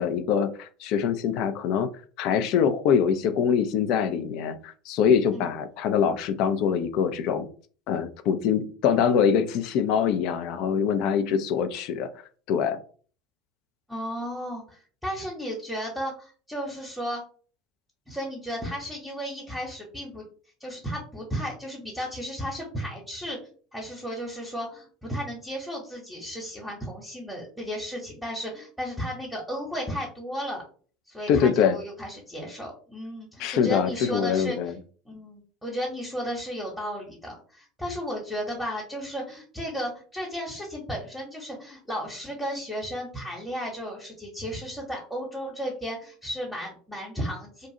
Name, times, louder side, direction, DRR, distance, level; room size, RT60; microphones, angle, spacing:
voice 1, 0.0-1.9 2.2-7.5 7.9-12.1 12.5-12.8 31.3-31.8 33.4-34.7, left 7 dB, 55° left, 0.3 m, -24 dB
voice 2, 13.9-17.2 18.1-20.3 20.6-23.4 23.7-30.6 31.1-34.6 35.0-47.7, equal, ahead, 0.9 m, -34 dB
2.6 x 2.3 x 2.7 m
figure-of-eight pair, 70°, 0 cm